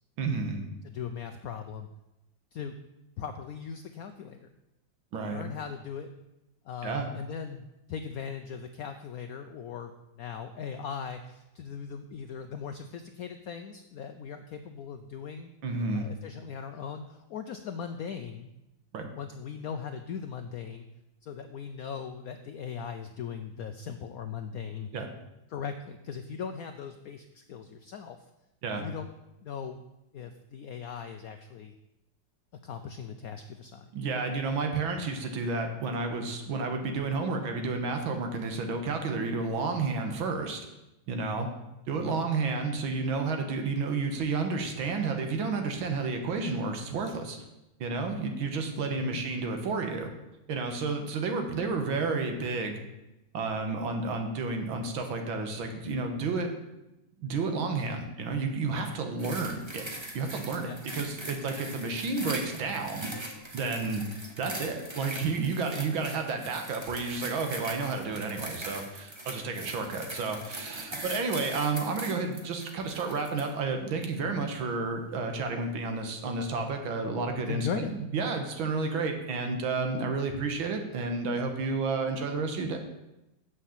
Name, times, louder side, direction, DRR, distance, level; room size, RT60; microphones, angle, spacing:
voice 1, 0.2-0.7 5.1-5.5 6.8-7.1 15.6-16.1 18.9-19.1 24.9-25.1 28.6-28.8 33.9-40.7 41.1-41.5 41.9-47.4 47.8-50.1 50.5-52.8 53.3-56.5 57.2-63.1 63.5-64.1 64.4-82.8, right 4 dB, 80° right, 5 dB, 2.0 m, -31 dB
voice 2, 0.8-1.9 2.5-2.8 3.2-4.6 5.3-6.1 6.6-15.5 15.9-18.5 19.1-20.9 21.2-24.9 25.5-28.2 28.8-29.1 29.4-29.8 30.1-31.7 32.6-33.9 41.9-42.3 48.9-49.2 60.6-60.8 77.4-77.9, left 7 dB, 80° left, 7 dB, 0.8 m, -39 dB
sound 1, 59.2-73.5 74.2-74.3, right 1 dB, 20° right, 0.7 m, -41 dB
7.7 x 6.5 x 7.2 m, 0.93 s
omnidirectional pair, 2.1 m